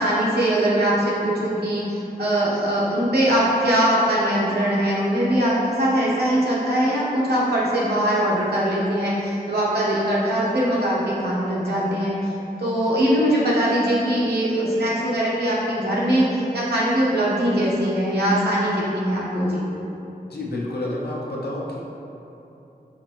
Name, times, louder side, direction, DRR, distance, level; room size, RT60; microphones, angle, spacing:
voice 1, 0.0-19.6, equal, 85° right, -7 dB, 1.0 m, -21 dB
voice 2, 20.3-21.8, left 1 dB, 80° left, -4 dB, 0.7 m, -29 dB
5.2 x 2.5 x 3.0 m, 2.9 s
wide cardioid pair, 105°, 16 cm